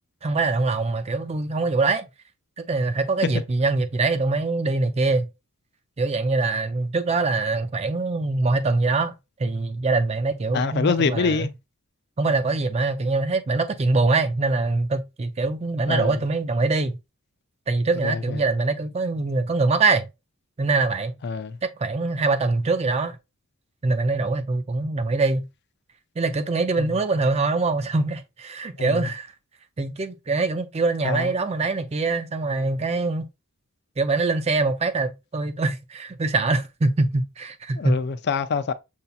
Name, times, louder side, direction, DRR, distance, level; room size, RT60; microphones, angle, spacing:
voice 1, 0.2-2.0 2.6-5.3 6.0-9.1 9.4-11.5 12.2-17.0 17.7-20.1 20.6-21.1 21.6-23.2 23.8-25.5 26.2-29.3 29.8-33.3 34.0-37.9, right 3 dB, 30° right, 0.4 m, -23 dB
voice 2, 10.5-11.5 15.9-16.2 18.0-18.4 21.2-21.6 26.8-26.9 28.8-29.1 31.0-31.3 37.8-38.7, left 5 dB, 50° left, 0.4 m, -25 dB
6.7 x 2.7 x 2.3 m
head